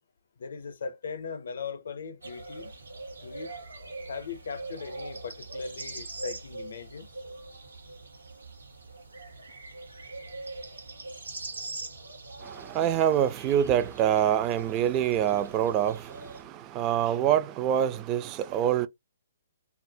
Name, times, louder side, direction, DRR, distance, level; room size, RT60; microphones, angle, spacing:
voice 1, 0.4-2.7 3.2-3.5 4.1-7.1, left 5 dB, 65° left, 0.5 m, -39 dB
sound 1, 2.2-16.4, right 3 dB, 85° right, 0.8 m, -42 dB
voice 2, 12.4-18.9, right 10 dB, 30° right, 0.3 m, -26 dB
2.3 x 2.1 x 2.6 m
figure-of-eight pair, 130°, 0 cm